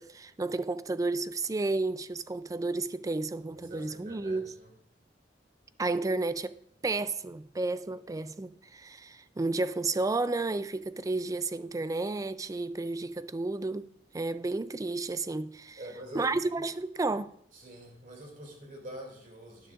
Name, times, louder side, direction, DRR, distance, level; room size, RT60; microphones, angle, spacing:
voice 1, 0.0-4.5 5.8-6.6 6.8-13.9 14.1-15.8 16.1-17.3, right 3 dB, 20° right, 0.3 m, -32 dB
voice 2, 3.5-4.7 15.8-16.4 17.5-19.7, equal, 50° right, 2.6 m, -46 dB
12.0 x 10.5 x 2.4 m
head